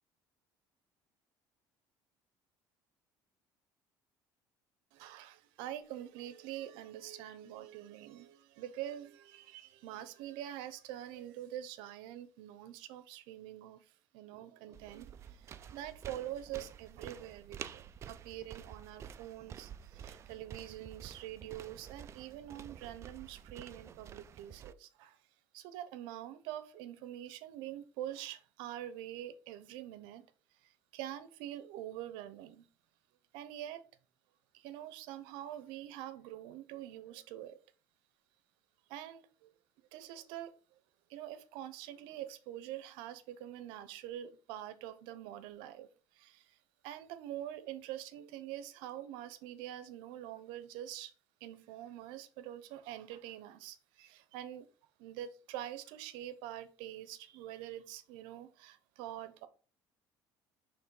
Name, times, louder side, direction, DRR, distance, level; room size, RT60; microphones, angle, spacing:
voice 1, 4.9-25.2 25.5-30.3 30.6-32.7 33.3-33.8 34.5-37.6 38.9-39.5 39.9-40.5 41.1-45.9 46.1-46.6 46.8-51.1 51.4-54.7 55.0-59.5, right 12 dB, 90° right, 0.7 m, -45 dB
sound 1, 14.7-24.7, right 8 dB, 35° right, 0.3 m, -50 dB
6.6 x 3.2 x 4.7 m
cardioid pair, 135°, 8 cm